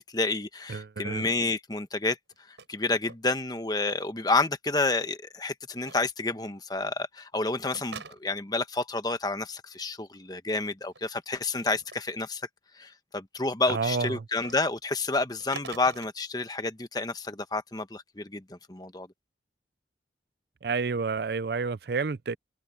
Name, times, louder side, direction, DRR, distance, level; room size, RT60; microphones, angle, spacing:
voice 1, 0.0-2.2 2.5-12.4 12.7-19.1, left 3 dB, 20° left, 1.1 m, -30 dB
voice 2, 0.7-1.3 13.7-14.2 20.6-22.4, right 4 dB, 60° right, 0.5 m, -30 dB
sound 1, 2.3-2.7 2.9-3.6 3.8-3.9 5.8-6.0 7.7-8.5 10.8-11.2 11.7-12.0 14.3-14.6 15.4-16.1, right 5 dB, 85° right, 6.8 m, -44 dB
head